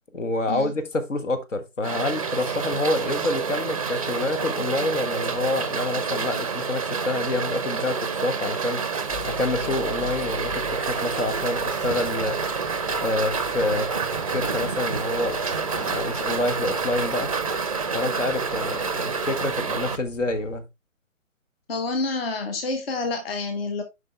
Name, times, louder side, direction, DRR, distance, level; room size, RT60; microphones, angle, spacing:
voice 1, 0.1-8.9 9.2-12.4 13.0-13.9 14.3-17.3 17.9-20.6, left 2 dB, 60° left, 1.6 m, -27 dB
sound 1, 1.8-20.0, right 5 dB, 25° right, 0.5 m, -28 dB
sound 2, 9.1-20.6, left 8 dB, 20° left, 3.6 m, -45 dB
voice 2, 21.7-23.8, left 3 dB, 45° left, 1.3 m, -28 dB
7.5 x 5.4 x 3.4 m
figure-of-eight pair, 140°, 41 cm